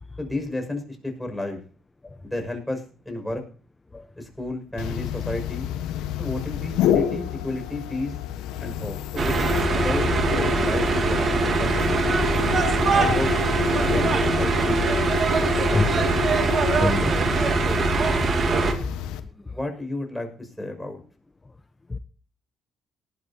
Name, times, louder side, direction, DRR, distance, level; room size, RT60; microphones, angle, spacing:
voice 1, 0.2-1.6 2.2-3.4 4.2-5.7 6.2-8.1 8.6-10.1 10.6-12.0 12.9-13.3 13.8-14.8 15.5-16.3 17.6-17.9 19.5-21.0, left 2 dB, 5° left, 6.3 m, -32 dB
sound 1, 4.8-19.2, left 11 dB, 80° left, 1.3 m, -29 dB
sound 2, 9.2-18.7, right 4 dB, 50° right, 2.4 m, -22 dB
voice 2, 16.8-17.3 21.9-22.0, left 3 dB, 20° left, 0.9 m, -25 dB
19.0 x 12.0 x 2.9 m
supercardioid pair, 65°, 0 cm